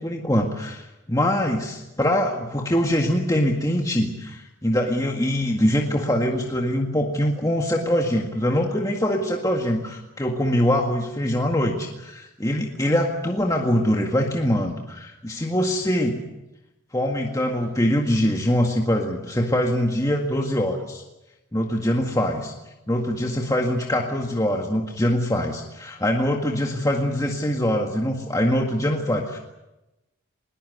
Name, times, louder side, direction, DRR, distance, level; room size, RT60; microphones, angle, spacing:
voice 1, 0.0-16.2 16.9-21.0 21.5-22.5 22.9-29.4, equal, 15° left, 1 dB, 1.8 m, -23 dB
21.5 x 20.0 x 9.5 m, 0.97 s
head